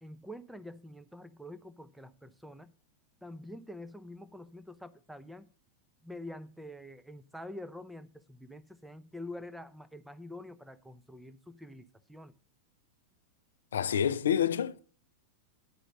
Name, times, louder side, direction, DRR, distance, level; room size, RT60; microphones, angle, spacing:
voice 1, 0.0-2.7 3.2-5.5 6.0-12.3, left 1 dB, 5° right, 0.6 m, -46 dB
voice 2, 13.7-14.8, left 9 dB, 65° left, 0.4 m, -28 dB
9.9 x 5.0 x 6.6 m
figure-of-eight pair, 90°, 0 cm